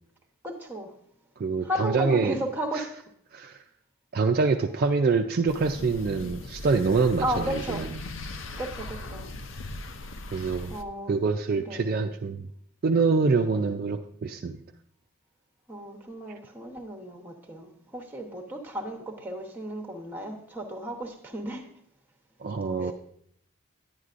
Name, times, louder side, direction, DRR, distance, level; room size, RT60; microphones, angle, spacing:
voice 1, 0.4-0.9 1.6-2.9 7.2-8.0 8.6-9.3 10.7-11.2 11.6-12.0 15.7-21.7 22.8-22.9, equal, 10° right, 0.9 m, -34 dB
voice 2, 1.4-2.4 3.3-3.6 4.1-7.9 10.3-10.7 11.1-12.5 12.8-14.6 22.4-22.9, right 4 dB, 45° right, 0.3 m, -25 dB
sound 1, 5.5-10.8, left 2 dB, 65° left, 0.6 m, -39 dB
10.5 x 9.5 x 2.5 m
head